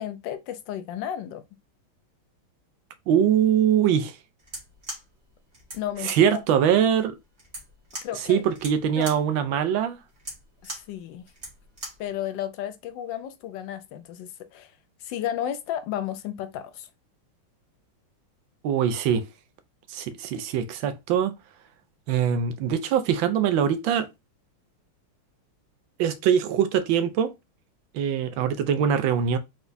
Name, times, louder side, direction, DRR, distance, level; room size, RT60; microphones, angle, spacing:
voice 1, 0.0-1.4 5.7-6.4 8.0-8.4 9.0-9.1 10.6-11.3 12.0-14.7 15.0-16.9, left 11 dB, 75° left, 1.1 m, -33 dB
voice 2, 3.1-4.2 6.0-7.1 8.3-10.0 18.6-19.2 19.9-21.3 22.1-24.1 26.0-27.3 27.9-29.4, right 8 dB, 75° right, 1.3 m, -22 dB
sound 1, 4.4-12.1, right 1 dB, 35° right, 1.7 m, -41 dB
4.6 x 4.1 x 2.6 m
omnidirectional pair, 2.3 m